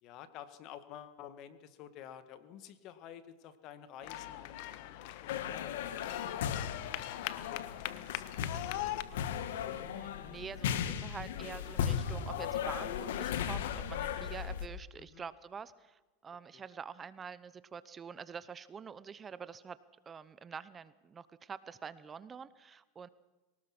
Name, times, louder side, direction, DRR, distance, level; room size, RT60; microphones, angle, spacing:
voice 1, 0.0-8.2 14.4-14.6 15.0-15.2 16.5-16.6, left 10 dB, 50° left, 11 dB, 1.8 m, -51 dB
sound 1, 4.0-9.0, left 15 dB, 65° left, 1.3 m, -41 dB
sound 2, 5.3-14.7, left 8 dB, 85° left, 1.5 m, -37 dB
voice 2, 9.7-19.8 20.0-23.1, right 6 dB, 25° right, 16 dB, 0.9 m, -46 dB
23.5 x 18.5 x 6.2 m, 1.1 s
supercardioid pair, 120°, 0 cm